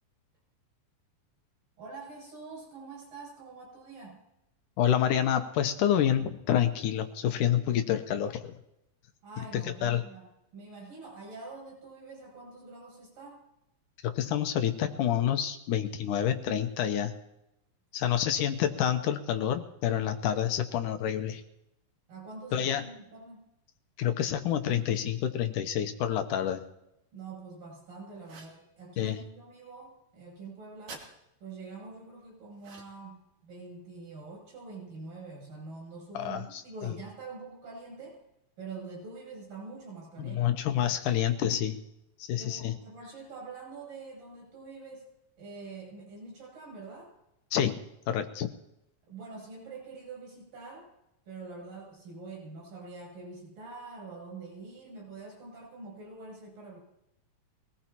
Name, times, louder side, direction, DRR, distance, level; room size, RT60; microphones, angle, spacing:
voice 1, 1.8-4.2 9.2-13.4 22.1-23.4 27.1-31.0 31.4-38.2 38.6-40.6 42.4-45.1 45.4-47.1 49.1-50.9 51.3-56.8, right 3 dB, 80° right, -1 dB, 9.8 m, -45 dB
voice 2, 4.8-8.5 9.5-10.0 14.0-17.1 17.9-21.4 22.5-22.9 24.0-26.6 29.0-29.2 36.1-36.9 40.2-41.8 42.2-42.7 47.5-47.8 48.1-48.5, left 10 dB, 75° left, 7 dB, 2.3 m, -28 dB
sound 1, 28.2-28.6 30.9-31.1 32.6-33.1, right 4 dB, 65° right, 3.8 m, -47 dB
23.5 x 19.0 x 3.0 m, 0.84 s
omnidirectional pair, 4.0 m